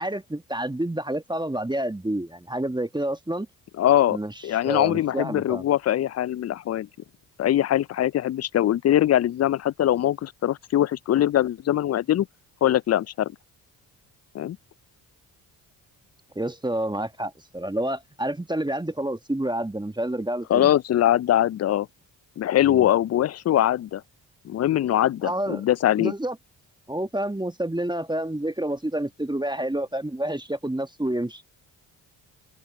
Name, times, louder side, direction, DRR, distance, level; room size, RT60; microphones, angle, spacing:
voice 1, 0.0-3.5 4.1-4.3 4.6-5.6 16.3-20.7 22.6-22.9 25.2-25.6 26.0-26.4 26.9-31.4, right 1 dB, 10° right, 1.3 m, -29 dB
voice 2, 3.8-4.2 4.4-6.9 7.4-12.3 12.6-13.3 14.3-14.6 20.5-21.9 22.4-24.0 24.4-26.1, left 12 dB, 35° left, 0.4 m, -22 dB
hypercardioid pair, 45°, 48 cm